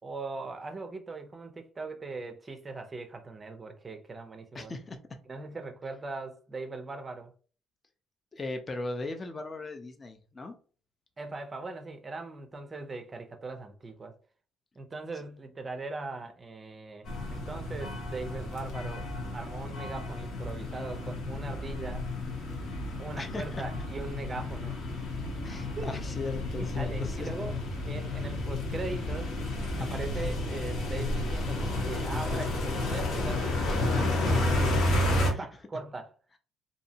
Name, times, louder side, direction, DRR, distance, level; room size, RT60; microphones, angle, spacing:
voice 1, 0.0-4.7 5.3-7.3 11.2-14.2 14.8-19.1 19.3-22.1 23.0-25.1 25.8-26.1 26.6-27.6 27.9-29.3 29.8-34.9 35.2-36.1, right 3 dB, 25° right, 0.5 m, -40 dB
voice 2, 4.5-5.0 8.3-10.6 23.2-23.6 25.4-27.3 35.3-35.4, left 2 dB, 25° left, 0.5 m, -38 dB
sound 1, 17.1-35.3, left 2 dB, 65° left, 0.9 m, -31 dB
2.6 x 2.0 x 2.7 m
cardioid pair, 105°, 0 cm